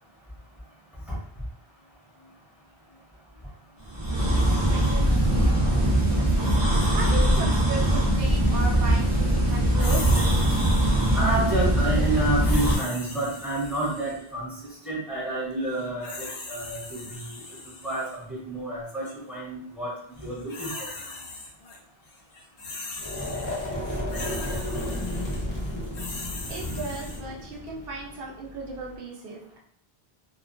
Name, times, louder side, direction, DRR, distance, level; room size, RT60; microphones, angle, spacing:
sound 1, 3.9-12.8, right 1 dB, 30° right, 0.4 m, -21 dB
voice 1, 4.3-6.5 6.9-10.3 26.5-29.6, right 3 dB, 70° right, -1 dB, 0.8 m, -36 dB
sound 2, 9.8-11.4 12.4-14.3 15.7-18.2 18.9-19.1 20.2-21.8 22.1-27.2, left 3 dB, 65° left, 0.7 m, -40 dB
voice 2, 11.1-14.5 14.8-17.4 17.8-19.9 20.2-20.9, right 1 dB, ahead, -7 dB, 0.8 m, -29 dB
sound 3, 23.0-29.0, left 1 dB, 25° left, 0.6 m, -33 dB
2.3 x 2.2 x 2.4 m, 0.67 s
omnidirectional pair, 1.0 m